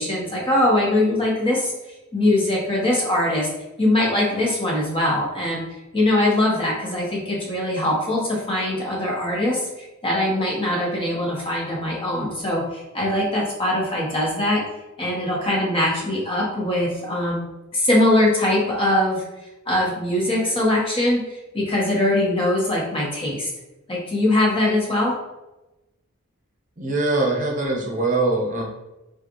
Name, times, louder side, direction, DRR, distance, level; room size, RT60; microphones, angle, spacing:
voice 1, 0.0-1.7 2.1-3.5 3.8-5.6 5.9-14.6 15.0-17.4 17.7-19.2 19.7-23.5 23.9-25.2, left 1 dB, 25° left, -3 dB, 1.3 m, -22 dB
voice 2, 26.8-28.6, right 2 dB, 40° right, -1 dB, 0.9 m, -22 dB
6.5 x 2.5 x 3.0 m, 0.98 s
head